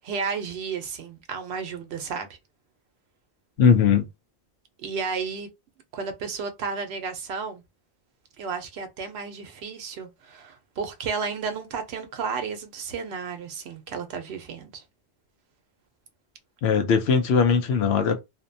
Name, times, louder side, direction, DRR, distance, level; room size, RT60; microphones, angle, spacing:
voice 1, 0.0-2.3 4.8-5.5 5.9-7.6 8.4-14.8, right 5 dB, 75° right, 0.9 m, -32 dB
voice 2, 3.6-4.1 16.6-18.2, left 6 dB, 80° left, 0.8 m, -20 dB
2.6 x 2.1 x 2.6 m
omnidirectional pair, 1.1 m